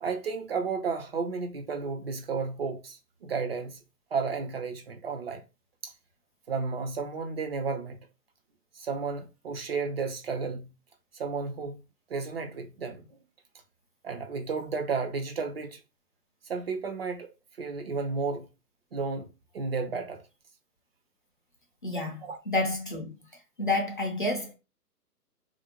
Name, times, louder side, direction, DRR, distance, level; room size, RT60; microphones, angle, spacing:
voice 1, 0.0-3.8 4.1-5.4 5.8-5.9 6.5-8.0 8.7-10.7 11.1-11.8 12.1-13.2 14.0-15.8 16.5-17.3 17.6-18.5 18.9-20.2 22.2-22.4, right 4 dB, 40° right, 0.6 m, -32 dB
voice 2, 21.8-23.1 23.6-24.5, left 2 dB, 35° left, 0.4 m, -29 dB
3.5 x 2.6 x 2.8 m
figure-of-eight pair, 135°, 47 cm